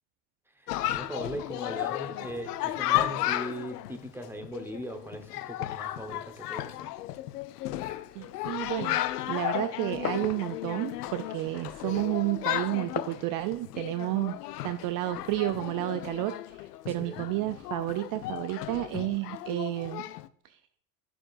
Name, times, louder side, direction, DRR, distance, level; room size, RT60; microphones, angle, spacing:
voice 1, 0.6-6.9 17.0-17.3, right 1 dB, 5° right, 6 dB, 1.1 m, -39 dB
Chatter, 0.7-20.3, left 14 dB, 80° left, 0.5 m, -34 dB
Glass, 8.1-13.2, left 12 dB, 35° left, 0.5 m, -42 dB
voice 2, 8.1-9.0 9.3-14.4 14.6-20.1 20.4-20.6, right 16 dB, 45° right, 12 dB, 0.5 m, -31 dB
9.9 x 6.4 x 2.5 m, 0.66 s
hypercardioid pair, 65°, 47 cm